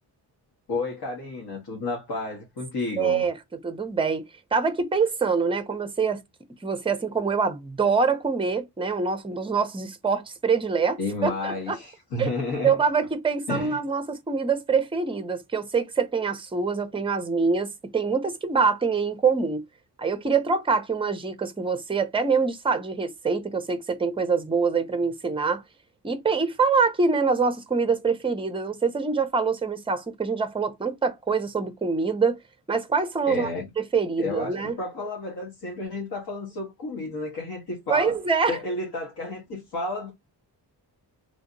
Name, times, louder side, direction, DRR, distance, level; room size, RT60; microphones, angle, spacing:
voice 1, 0.7-3.3 11.0-12.7 13.5-13.8 33.3-33.7 34.2-38.2 38.5-40.1, left 3 dB, 65° left, 1.3 m, -31 dB
voice 2, 3.0-4.3 4.5-6.2 6.6-11.8 12.2-12.3 12.6-19.6 20.0-25.6 26.0-32.4 32.7-33.5 33.8-34.8 37.9-38.6, right 5 dB, 15° right, 0.5 m, -25 dB
3.3 x 2.7 x 2.6 m
wide cardioid pair, 170°, 41 cm